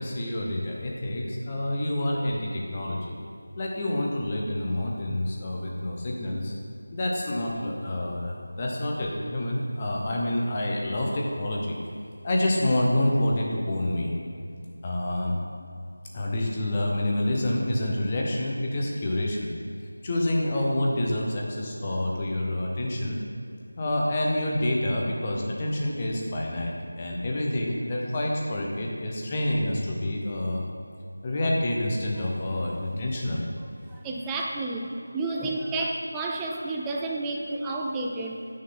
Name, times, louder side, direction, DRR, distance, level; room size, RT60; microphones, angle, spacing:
voice 1, 0.0-3.2 3.6-6.5 6.9-11.8 12.2-14.1 14.8-15.3 16.1-19.5 20.0-23.2 23.8-30.6 31.2-33.4, left 1 dB, 15° left, -2 dB, 0.8 m, -27 dB
voice 2, 33.9-38.4, right 2 dB, 5° right, -1 dB, 0.3 m, -31 dB
11.0 x 6.3 x 3.9 m, 2.5 s
figure-of-eight pair, 175°, 0 cm